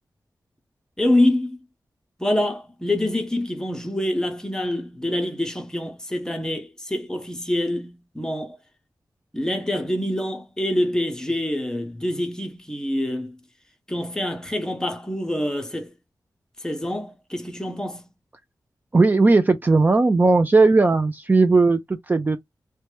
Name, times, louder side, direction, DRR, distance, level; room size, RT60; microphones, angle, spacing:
voice 1, 1.0-1.7 2.2-8.6 9.3-13.4 13.9-15.9 16.6-18.1, left 1 dB, 10° left, 0.7 m, -26 dB
voice 2, 18.9-22.4, right 3 dB, 25° right, 0.3 m, -17 dB
2.8 x 2.2 x 3.1 m
wide cardioid pair, 115°, 7 cm